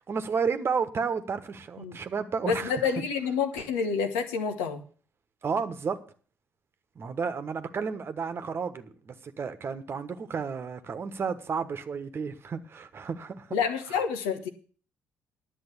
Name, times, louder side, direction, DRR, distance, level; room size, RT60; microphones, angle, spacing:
voice 1, 0.1-2.7 5.4-6.0 6.9-13.6 13.9-14.0, right 5 dB, 40° right, 1.2 m, -32 dB
voice 2, 2.5-4.8 13.5-14.5, left 6 dB, 75° left, 1.2 m, -28 dB
11.0 x 7.4 x 7.1 m
hypercardioid pair, 45°, 6 cm